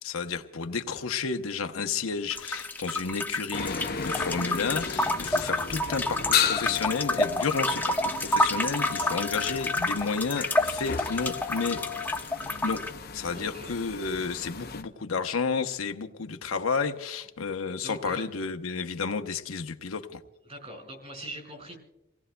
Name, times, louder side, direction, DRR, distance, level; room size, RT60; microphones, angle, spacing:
voice 1, 0.0-11.8 12.6-12.8 13.1-20.2, left 5 dB, 85° left, 6 dB, 0.8 m, -31 dB
sound 1, 2.3-12.9, left 1 dB, 10° left, 0.5 m, -29 dB
sound 2, 3.5-14.8, left 7 dB, 50° left, 0.7 m, -34 dB
voice 2, 13.3-13.7 17.8-18.3 20.4-21.8, right 1 dB, 35° right, 3 dB, 4.8 m, -42 dB
29.0 x 17.5 x 2.2 m, 0.97 s
head